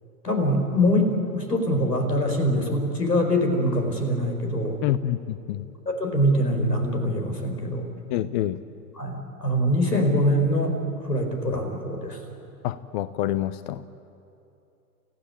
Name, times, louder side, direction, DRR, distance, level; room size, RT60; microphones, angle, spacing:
voice 1, 0.2-4.8 5.8-7.9 9.0-10.8 11.0-12.2, equal, 85° left, 4 dB, 4.9 m, -23 dB
voice 2, 4.8-5.7 8.1-8.6 12.6-13.8, left 12 dB, 35° left, 15 dB, 0.6 m, -27 dB
29.0 x 15.5 x 8.9 m, 2.8 s
figure-of-eight pair, 105°, 48 cm